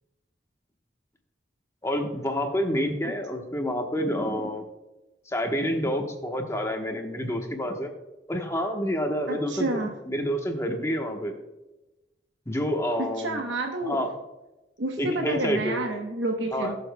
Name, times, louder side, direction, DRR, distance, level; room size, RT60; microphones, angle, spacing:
voice 1, 1.8-4.6 5.3-7.9 8.3-11.4 12.5-13.4 13.8-14.1 15.0-15.8 16.5-16.8, equal, 15° left, 3 dB, 1.1 m, -28 dB
voice 2, 9.3-9.9 13.2-14.0 14.8-16.8, right 2 dB, 90° right, 2 dB, 1.0 m, -29 dB
19.5 x 6.9 x 2.2 m, 1.0 s
head